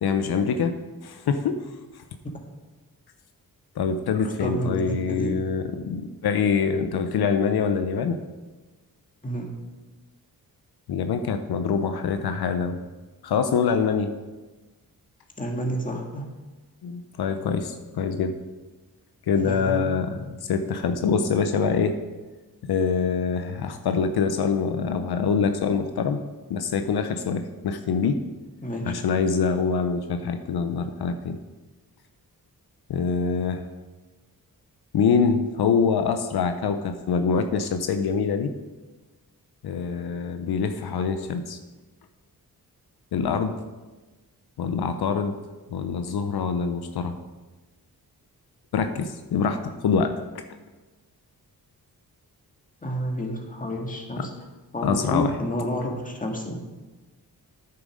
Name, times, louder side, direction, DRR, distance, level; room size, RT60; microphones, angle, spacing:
voice 1, 0.0-0.7 1.0-1.6 3.8-8.2 10.9-12.8 13.2-14.1 16.8-18.4 19.3-22.0 22.6-26.2 26.5-28.2 28.8-31.4 32.9-33.7 34.9-38.5 39.6-41.6 43.1-43.5 44.6-45.3 45.7-47.2 48.7-50.4 54.2-54.3 54.8-55.4, left 5 dB, 80° left, 7 dB, 0.7 m, -25 dB
voice 2, 4.4-5.4 9.2-9.5 15.4-16.2 19.4-20.0 28.6-28.9 52.8-54.3 54.7-56.6, equal, 20° left, 1 dB, 1.8 m, -29 dB
9.2 x 6.8 x 5.1 m, 1.2 s
cardioid pair, 85°, 37 cm